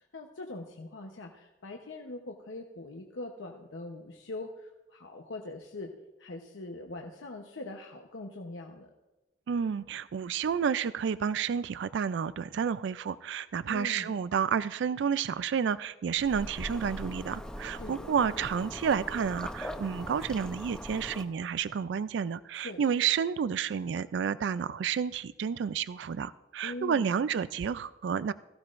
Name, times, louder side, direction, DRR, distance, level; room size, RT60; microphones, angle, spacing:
voice 1, 0.0-5.9 6.2-8.9 13.7-14.2 17.8-18.0 22.5-22.8 26.6-27.0, left 2 dB, 90° left, 2 dB, 0.9 m, -42 dB
voice 2, 9.5-28.3, right 7 dB, 65° right, 16 dB, 0.3 m, -30 dB
sound 1, 16.2-21.2, equal, 5° left, 0.6 m, -41 dB
17.0 x 14.5 x 2.5 m, 1.0 s
head